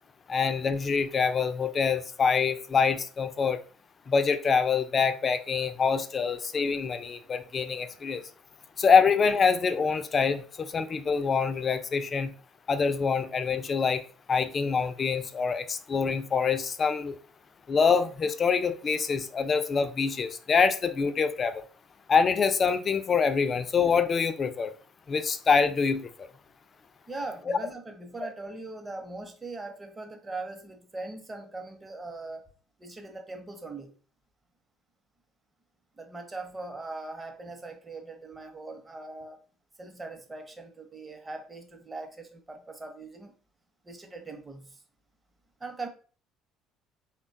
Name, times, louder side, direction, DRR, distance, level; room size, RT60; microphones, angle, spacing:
voice 1, 0.3-3.6 4.1-8.2 8.8-12.3 12.7-14.0 14.3-17.2 17.7-21.6 22.1-24.8 25.1-26.3 27.5-27.6, left 5 dB, 40° left, 0.3 m, -25 dB
voice 2, 27.1-32.5 32.8-33.9 36.0-39.4 39.8-43.4 43.8-44.8 45.6-45.9, right 3 dB, 20° right, 0.7 m, -40 dB
3.2 x 2.2 x 2.6 m
hypercardioid pair, 60°, 0 cm